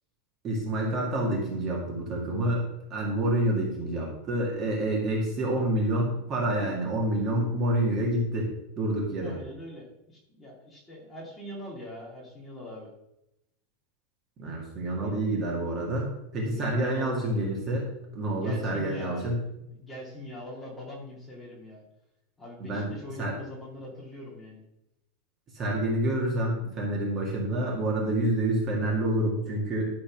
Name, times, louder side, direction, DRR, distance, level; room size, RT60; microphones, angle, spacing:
voice 1, 0.4-2.6 2.9-8.5 8.8-9.4 14.4-19.4 22.6-22.9 23.2-23.3 25.5-29.9, right 1 dB, 25° right, -2 dB, 2.1 m, -28 dB
voice 2, 9.2-12.9 14.9-15.4 16.5-17.5 18.4-21.8 22.4-24.6, left 1 dB, 10° left, -4 dB, 2.5 m, -42 dB
12.5 x 4.4 x 5.9 m, 0.84 s
supercardioid pair, 175°, 0 cm